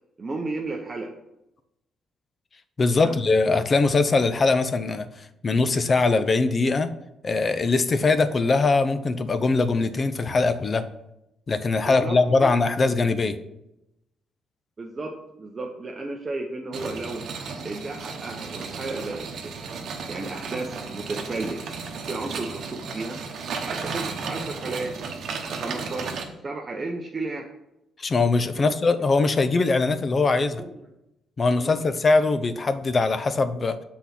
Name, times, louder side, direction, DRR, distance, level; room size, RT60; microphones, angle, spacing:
voice 1, 0.2-1.1 2.9-3.2 11.9-12.5 14.8-17.2 17.6-19.5 20.1-21.6 22.0-23.2 23.6-24.9 25.5-26.1 26.4-27.5 28.6-28.7 30.6-30.8 31.6-31.8, right 2 dB, 30° right, 1 dB, 0.8 m, -33 dB
voice 2, 2.8-6.9 7.2-10.8 11.5-13.4 28.0-30.6 31.4-33.8, left 3 dB, 35° left, 11 dB, 0.6 m, -22 dB
sound 1, 16.7-26.2, right 5 dB, 65° right, 1.0 m, -34 dB
6.1 x 4.1 x 5.8 m, 0.87 s
cardioid pair, 90°, 0 cm